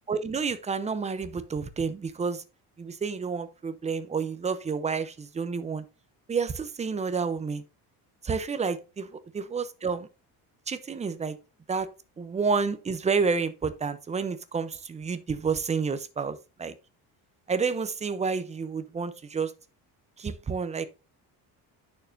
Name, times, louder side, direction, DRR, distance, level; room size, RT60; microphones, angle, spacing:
voice 1, 0.1-2.4 2.8-5.8 6.3-7.6 8.2-10.1 10.7-11.4 11.7-11.9 12.2-16.7 17.5-19.5 20.2-20.8, right 5 dB, 15° right, 0.6 m, -30 dB
9.2 x 6.5 x 2.6 m
cardioid pair, 175°, 38 cm